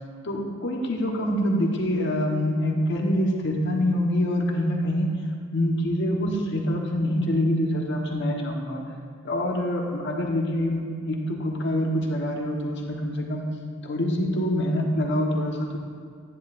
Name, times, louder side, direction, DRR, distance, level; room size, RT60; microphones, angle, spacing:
voice 1, 0.2-5.1 5.5-8.8 9.2-13.5 13.8-15.8, left 1 dB, 65° left, 1 dB, 1.2 m, -25 dB
10.5 x 10.5 x 2.5 m, 2.1 s
head